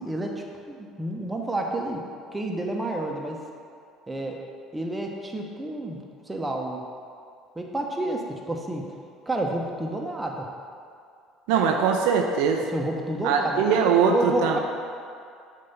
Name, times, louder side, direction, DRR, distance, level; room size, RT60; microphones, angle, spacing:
voice 1, 0.0-2.1 2.3-3.4 4.1-4.4 4.7-6.8 7.6-8.9 9.3-10.5 12.6-14.6, right 1 dB, 15° right, 0 dB, 1.0 m, -30 dB
voice 2, 11.5-12.6 13.2-14.6, right 6 dB, 75° right, 3 dB, 0.5 m, -21 dB
7.6 x 2.8 x 5.6 m, 2.4 s
hypercardioid pair, 70°, 0 cm